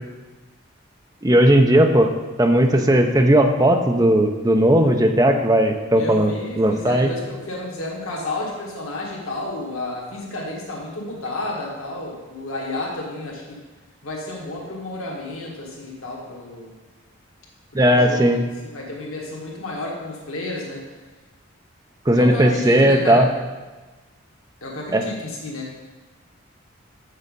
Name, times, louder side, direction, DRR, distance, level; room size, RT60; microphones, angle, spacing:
voice 1, 1.2-2.1 2.4-7.1 17.7-18.4 22.1-23.3 24.9-25.0, right 1 dB, 15° right, 4 dB, 0.6 m, -16 dB
voice 2, 5.9-13.6 14.0-16.7 17.7-18.5 18.7-20.8 22.1-23.2 24.6-25.7, left 2 dB, 90° left, -2 dB, 1.4 m, -31 dB
7.3 x 6.6 x 5.3 m, 1.2 s
head